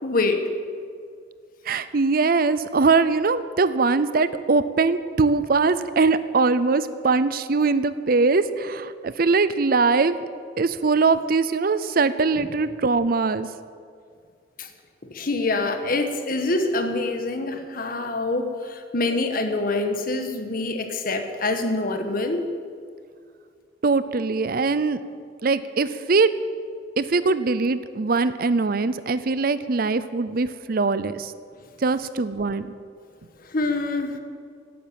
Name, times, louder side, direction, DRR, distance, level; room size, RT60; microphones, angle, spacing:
voice 1, 0.0-0.4 14.6-14.7 15.0-22.4 33.5-34.2, left 2 dB, 50° left, 6 dB, 1.5 m, -25 dB
voice 2, 1.7-10.1 10.6-13.5 23.8-25.0 25.4-26.3 27.0-31.3 31.8-32.7, right 4 dB, 55° right, 14 dB, 0.6 m, -21 dB
17.0 x 9.4 x 7.6 m, 2.2 s
head